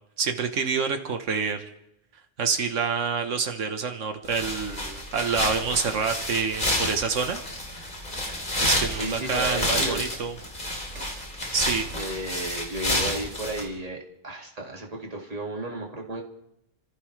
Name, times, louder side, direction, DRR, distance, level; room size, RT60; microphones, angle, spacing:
voice 1, 0.2-1.6 2.4-7.4 8.6-10.3 11.5-12.0, right 5 dB, 90° right, 5 dB, 1.6 m, -27 dB
sound 1, 4.3-13.6, left 1 dB, 40° left, 3.6 m, -30 dB
voice 2, 8.9-10.2 11.9-16.2, right 2 dB, 30° right, 0 dB, 2.2 m, -33 dB
sound 2, 8.9-9.3 10.9-11.3 12.9-13.3, right 5 dB, 70° right, 1.5 m, -43 dB
30.0 x 15.0 x 3.3 m, 0.83 s
omnidirectional pair, 1.3 m